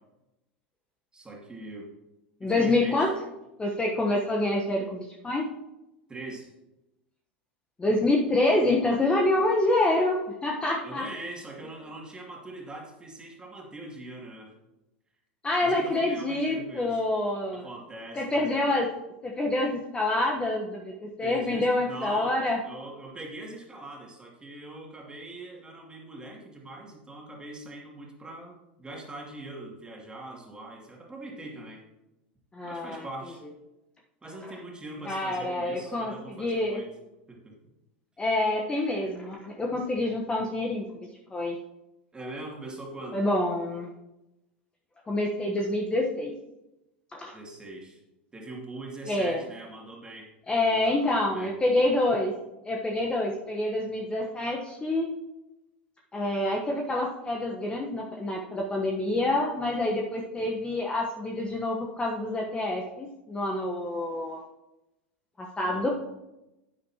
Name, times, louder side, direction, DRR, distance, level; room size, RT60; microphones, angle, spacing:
voice 1, 1.1-1.9 2.4-3.1 6.1-6.5 10.8-14.5 15.6-17.0 17.5-18.7 21.2-22.4 22.6-31.8 32.6-33.4 34.2-36.9 37.3-37.6 42.1-43.3 47.3-48.0 48.3-51.5 60.4-60.6 65.6-65.9, right 2 dB, 15° right, -1 dB, 2.6 m, -42 dB
voice 2, 2.4-3.1 3.6-5.4 7.8-11.1 15.4-17.6 18.2-18.9 19.2-22.6 32.5-33.0 35.1-36.1 36.4-36.8 38.2-40.8 41.3-41.6 43.1-43.9 45.1-46.3 47.1-47.3 49.1-49.4 50.5-52.3 52.6-55.1 56.1-64.4 65.4-65.9, left 2 dB, 15° left, 0 dB, 1.1 m, -27 dB
10.5 x 8.8 x 2.9 m, 0.95 s
hypercardioid pair, 90°, 6 cm